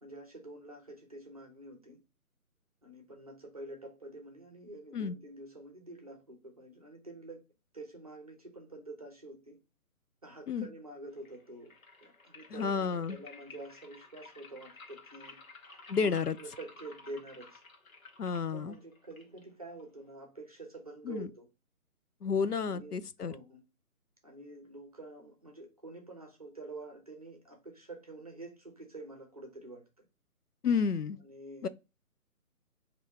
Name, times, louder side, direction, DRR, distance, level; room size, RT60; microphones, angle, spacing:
voice 1, 0.0-2.0 2.8-7.4 7.7-9.6 10.2-11.7 12.0-15.4 16.0-17.6 18.5-21.5 22.6-23.6 24.2-29.9 31.2-31.7, right 2 dB, 25° right, 0.7 m, -47 dB
sound 1, 11.1-20.1, left 3 dB, 60° left, 1.1 m, -54 dB
voice 2, 12.5-13.2 15.9-16.4 18.2-18.8 21.1-21.3 22.2-23.3 30.6-31.2 31.6-31.7, left 6 dB, 85° left, 0.6 m, -31 dB
4.0 x 2.8 x 3.4 m
figure-of-eight pair, 150°, 45 cm